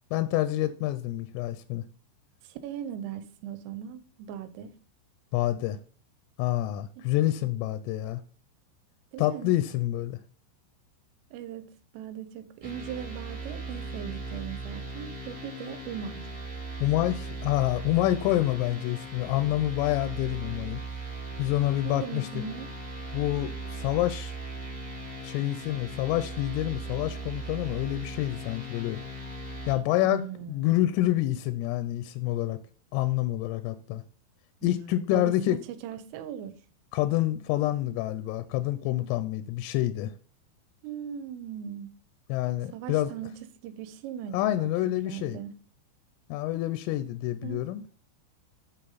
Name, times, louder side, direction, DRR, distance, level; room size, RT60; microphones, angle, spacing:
voice 1, 0.1-1.8 5.3-5.8 6.4-8.2 9.2-10.2 16.8-20.8 21.4-22.3 23.1-24.3 25.2-29.0 29.7-30.2 30.5-32.6 32.9-34.0 34.6-35.6 36.9-40.1 42.3-43.1 44.3-45.4 46.3-47.8, left 14 dB, 85° left, 3.1 m, -27 dB
voice 2, 2.4-4.7 7.0-7.2 9.1-9.6 11.3-16.3 21.8-22.7 30.0-30.7 34.6-36.5 40.8-41.9 42.7-44.7 45.1-45.5 47.4-47.7, right 9 dB, 85° right, 3.3 m, -39 dB
sound 1, 12.6-29.7, right 2 dB, 25° right, 1.6 m, -38 dB
7.7 x 6.4 x 4.0 m
omnidirectional pair, 5.8 m